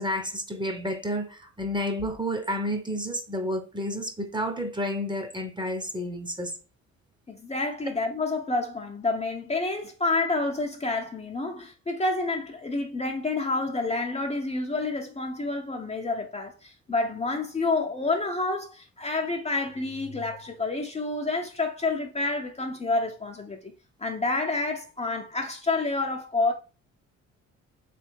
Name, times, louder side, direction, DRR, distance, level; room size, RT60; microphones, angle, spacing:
voice 1, 0.0-6.5, equal, 15° right, 0.9 m, -30 dB
voice 2, 7.3-23.7 24.0-26.5, left 3 dB, 20° left, 0.7 m, -29 dB
3.4 x 3.3 x 4.6 m
cardioid pair, 90°, 30 cm